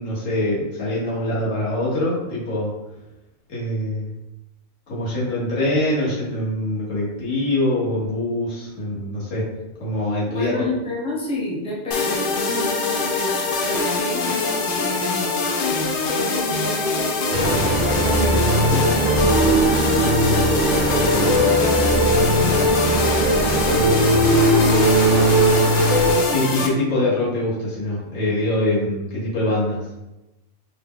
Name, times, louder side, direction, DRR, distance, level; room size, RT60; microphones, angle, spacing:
voice 1, 0.0-2.7 3.5-4.1 4.9-9.5 9.8-10.6 26.3-29.8, left 1 dB, 85° left, -7 dB, 1.6 m, -23 dB
voice 2, 10.3-15.3 16.1-17.5 18.0-20.0 20.7-24.2, left 1 dB, 5° left, -6 dB, 0.6 m, -31 dB
sound 1, 11.9-26.7, left 4 dB, 60° left, 0.6 m, -24 dB
sound 2, 17.3-26.1, right 1 dB, 55° right, 0.7 m, -18 dB
3.4 x 2.2 x 3.6 m, 0.98 s
omnidirectional pair, 1.3 m